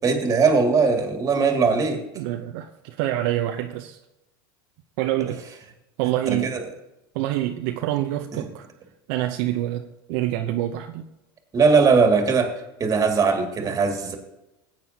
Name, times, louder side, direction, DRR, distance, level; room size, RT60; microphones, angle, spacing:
voice 1, 0.0-2.0 6.3-6.6 8.3-8.4 11.5-12.5 12.8-14.2, right 5 dB, 30° right, 4 dB, 2.2 m, -20 dB
voice 2, 2.2-4.0 5.0-5.4 6.0-6.5 7.1-8.7 9.1-11.1 13.6-13.8, right 13 dB, 65° right, 5 dB, 0.7 m, -26 dB
16.5 x 9.0 x 2.8 m, 0.94 s
hypercardioid pair, 100°, 12 cm